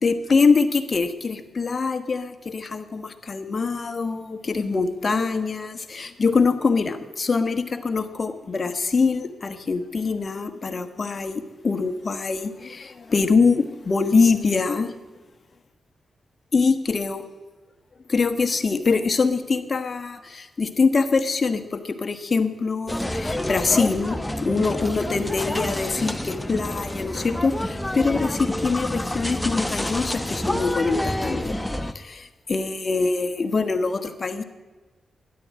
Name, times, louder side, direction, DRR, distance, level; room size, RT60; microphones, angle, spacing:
voice 1, 0.0-14.9 16.5-17.2 18.1-31.6 31.9-34.4, left 4 dB, 45° left, 10 dB, 1.3 m, -24 dB
sound 1, 22.9-31.9, left 1 dB, 10° left, 1.0 m, -28 dB
12.5 x 10.5 x 7.5 m, 1.3 s
supercardioid pair, 50°, 0 cm